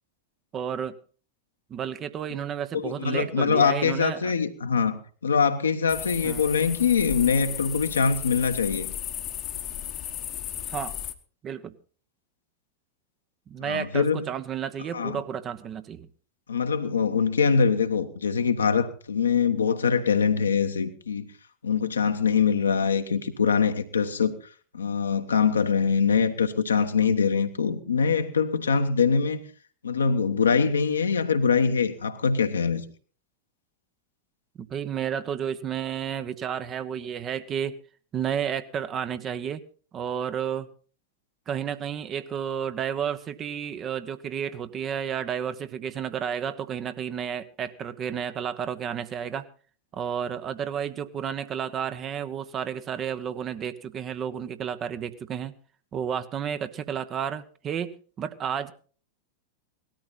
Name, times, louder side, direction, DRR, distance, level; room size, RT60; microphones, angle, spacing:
voice 1, 0.5-1.0 1.7-4.3 6.2-6.5 10.7-10.9 11.4-11.7 13.5-16.1 34.6-37.8 38.1-39.6 39.9-40.7 41.5-49.4 49.9-55.5 55.9-58.7, right 8 dB, 30° right, 1.1 m, -31 dB
voice 2, 2.7-8.9 13.6-14.3 14.9-15.2 16.5-21.2 21.6-24.3 24.7-29.4 29.8-32.8, left 6 dB, 75° left, 1.4 m, -23 dB
sound 1, 5.9-11.1, left 11 dB, 35° left, 1.2 m, -35 dB
18.5 x 13.0 x 4.2 m
figure-of-eight pair, 90°, 0 cm